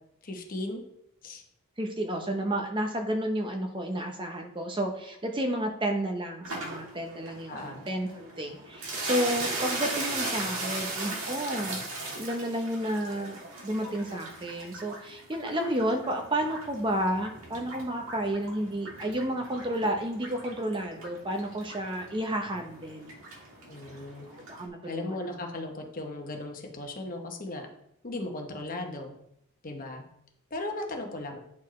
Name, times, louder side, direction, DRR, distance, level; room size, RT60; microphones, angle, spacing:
voice 1, 0.2-0.8 1.2-1.4 7.5-7.9 23.7-24.3 24.8-27.7 28.0-29.1 29.6-30.0 30.5-31.4, left 2 dB, 40° left, 3 dB, 1.0 m, -36 dB
voice 2, 1.8-11.8 12.2-23.2 24.3-25.3, right 1 dB, 25° right, 3 dB, 0.7 m, -31 dB
sound 1, 6.4-24.7, right 2 dB, 80° right, 1.7 m, -38 dB
9.5 x 4.4 x 3.2 m, 0.75 s
head